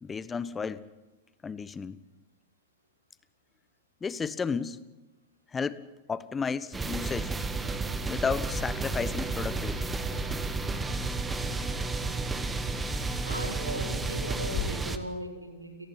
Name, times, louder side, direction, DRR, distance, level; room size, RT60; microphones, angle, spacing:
voice 1, 0.0-0.8 1.4-2.0 4.0-4.8 5.5-5.8 6.1-7.3 8.1-9.9, left 5 dB, 15° left, 17 dB, 1.1 m, -32 dB
sound 1, 6.7-15.0, right 3 dB, 10° right, 1.7 m, -32 dB
sound 2, 8.2-14.8, left 10 dB, 50° left, 1.6 m, -42 dB
voice 2, 13.2-15.9, equal, 85° right, 3 dB, 4.1 m, -38 dB
30.0 x 18.5 x 6.0 m, 1.2 s
figure-of-eight pair, 90°, 0 cm